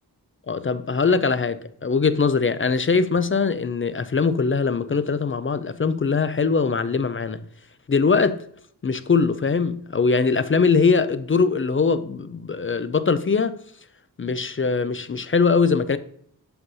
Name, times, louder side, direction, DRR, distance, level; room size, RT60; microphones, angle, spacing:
voice 1, 0.5-7.4 7.9-8.4 8.8-13.6 14.2-16.0, left 5 dB, 35° left, 0.4 m, -21 dB
7.8 x 5.5 x 2.7 m
wide cardioid pair, 55°, 39 cm